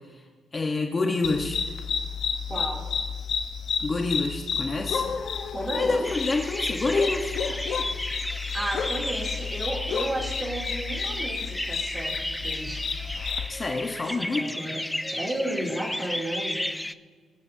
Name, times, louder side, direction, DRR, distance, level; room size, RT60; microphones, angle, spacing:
voice 1, 0.5-1.6 3.8-5.1 5.7-7.4 13.5-14.5, left 3 dB, 30° left, 2 dB, 1.1 m, -27 dB
Crickets chirping and dog barking, 1.2-13.5, left 6 dB, 60° left, 0.9 m, -31 dB
voice 2, 2.5-2.8 5.5-6.1 8.5-12.9 14.2-14.8 15.1-16.7, right 1 dB, 20° right, -1 dB, 2.8 m, -33 dB
sound 1, 6.0-16.9, left 1 dB, 5° left, 0.3 m, -33 dB
24.0 x 9.1 x 2.7 m, 1.5 s
cardioid pair, 105°, 0 cm